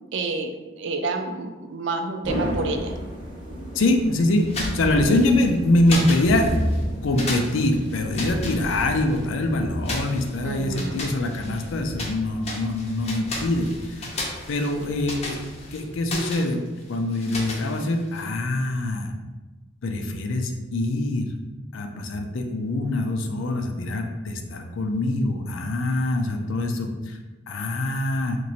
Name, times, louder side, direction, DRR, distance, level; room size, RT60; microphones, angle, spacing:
voice 1, 0.1-3.0 4.8-5.2 10.4-11.0, right 3 dB, 65° right, 6 dB, 0.4 m, -29 dB
sound 1, 2.2-16.0, equal, 25° right, 0.7 m, -33 dB
voice 2, 3.7-4.5 4.7-6.6 7.0-14.1 14.5-15.4 15.7-16.6 16.9-19.1 19.8-21.3 21.7-27.2 27.5-28.4, left 2 dB, 85° left, 4 dB, 0.5 m, -24 dB
sound 2, 4.4-5.5 5.8-6.8 7.2-9.2 9.8-12.2 12.4-18.2, left 2 dB, 35° left, 0.7 m, -35 dB
3.0 x 2.6 x 4.0 m, 1.2 s
head